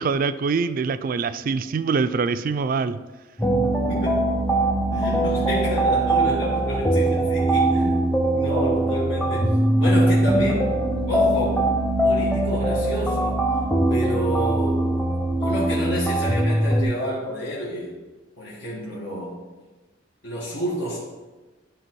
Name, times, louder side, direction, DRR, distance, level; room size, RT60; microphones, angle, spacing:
voice 1, 0.0-3.0, right 5 dB, 45° right, 0.3 m, -24 dB
sound 1, 3.4-16.8, right 1 dB, 10° left, 0.7 m, -21 dB
voice 2, 3.8-4.3 4.9-10.7 11.1-11.7 12.0-13.4 13.9-15.0 15.4-18.0 18.4-19.4 20.2-21.0, equal, 75° left, 1.6 m, -29 dB
11.0 x 3.8 x 4.6 m
head